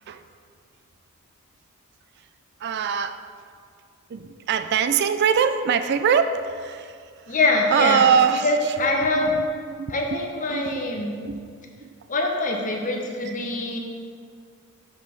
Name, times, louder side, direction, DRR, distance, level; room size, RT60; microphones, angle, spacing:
voice 1, 2.6-3.2 4.1-7.0 7.3-7.4 7.7-10.2 10.5-10.8 11.2-11.4 11.8-11.9 13.3-13.4, right 7 dB, 50° right, 10 dB, 0.3 m, -23 dB
voice 2, 7.3-8.0 8.4-9.3 9.9-11.1 12.1-13.8, left 2 dB, 40° left, 1 dB, 0.9 m, -24 dB
5.2 x 5.2 x 6.0 m, 2.1 s
head